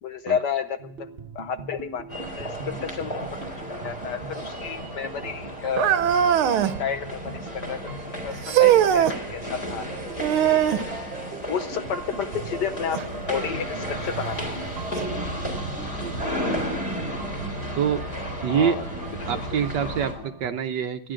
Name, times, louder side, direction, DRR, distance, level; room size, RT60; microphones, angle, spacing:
voice 1, 0.0-0.9 1.3-2.1 2.4-3.2 3.7-6.0 6.8-7.8 8.2-9.9 11.5-14.5 18.5-18.8 19.2-19.4 20.1-20.2, left 7 dB, 65° left, 10 dB, 1.2 m, -31 dB
sound 1, 0.8-20.5, right 4 dB, 35° right, 1.1 m, -42 dB
sound 2, 2.1-20.1, equal, 30° left, 4.2 m, -33 dB
sound 3, 5.8-6.8 8.4-9.2 10.2-10.9 13.0-13.1 13.9-14.0 15.0-15.1, right 10 dB, 80° right, 1.7 m, -20 dB
voice 2, 18.4-18.8 19.3-21.1, right 8 dB, 65° right, 8 dB, 1.2 m, -25 dB
25.5 x 10.5 x 3.8 m, 0.67 s
omnidirectional pair, 2.3 m